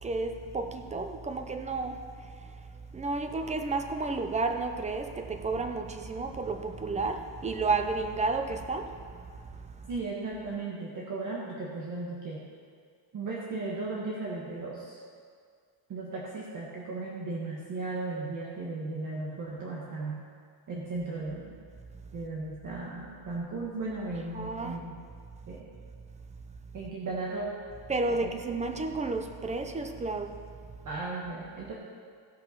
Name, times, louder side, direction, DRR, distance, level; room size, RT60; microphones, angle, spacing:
voice 1, 0.0-9.9 24.3-24.8 27.9-30.5, right 3 dB, 15° right, 0.5 m, -32 dB
voice 2, 9.9-12.4 13.1-15.0 15.9-20.2 20.7-21.6 22.1-25.0 25.5-25.7 26.7-27.5 28.2-28.4 30.8-31.7, right 3 dB, 45° right, 1.4 m, -36 dB
16.0 x 5.6 x 5.7 m
cardioid pair, 170°, 44 cm